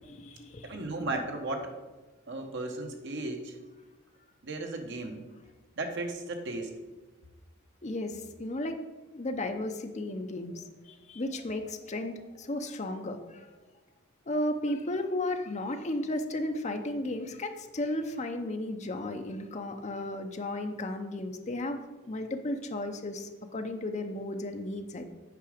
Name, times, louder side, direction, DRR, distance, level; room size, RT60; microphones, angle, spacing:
voice 1, 0.1-0.8 7.8-8.8 9.1-13.5 14.3-21.8 22.1-25.0, left 1 dB, 35° left, 6 dB, 0.7 m, -34 dB
voice 2, 0.7-1.8 2.3-3.6 4.4-5.2 5.8-6.8, right 2 dB, 55° right, 4 dB, 1.1 m, -35 dB
8.4 x 5.0 x 5.0 m, 1.2 s
head